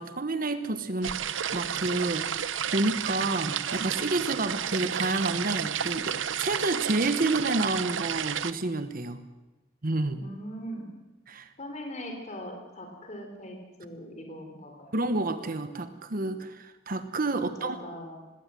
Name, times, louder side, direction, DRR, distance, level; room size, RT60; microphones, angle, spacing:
voice 1, 0.0-9.2 9.8-10.2 11.3-11.5 14.9-17.8, right 2 dB, 45° right, 10 dB, 1.2 m, -29 dB
sound 1, 1.0-8.5, right 8 dB, 80° right, 0.8 m, -31 dB
voice 2, 10.1-10.9 11.6-14.9 17.3-18.2, equal, 40° left, 3 dB, 3.9 m, -41 dB
20.0 x 17.0 x 7.7 m, 1.1 s
head